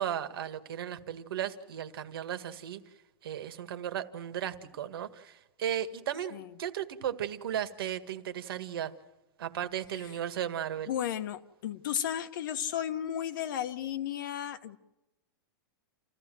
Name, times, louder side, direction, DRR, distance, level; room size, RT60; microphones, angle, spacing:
voice 1, 0.0-2.8 3.2-8.9 9.4-10.9, right 10 dB, 70° right, 10 dB, 1.8 m, -35 dB
voice 2, 10.9-14.8, left 10 dB, 55° left, 10 dB, 1.3 m, -34 dB
28.5 x 15.0 x 7.8 m, 1.0 s
supercardioid pair, 165°, 13 cm